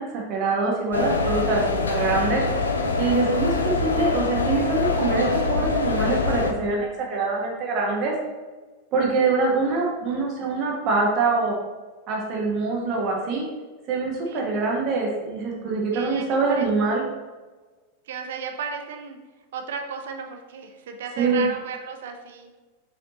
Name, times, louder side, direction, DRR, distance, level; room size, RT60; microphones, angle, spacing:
voice 1, 0.0-2.4 3.0-8.1 8.9-11.5 12.1-13.5 13.9-17.0 21.2-21.4, right 3 dB, 35° right, -2 dB, 1.3 m, -24 dB
sound 1, 0.9-6.5, left 3 dB, 75° left, 0.6 m, -24 dB
voice 2, 3.3-3.6 14.3-14.4 15.9-16.9 18.1-19.2 19.5-22.5, right 6 dB, 60° right, 5 dB, 0.8 m, -35 dB
6.6 x 5.0 x 3.0 m, 1.3 s
figure-of-eight pair, 90°, 0 cm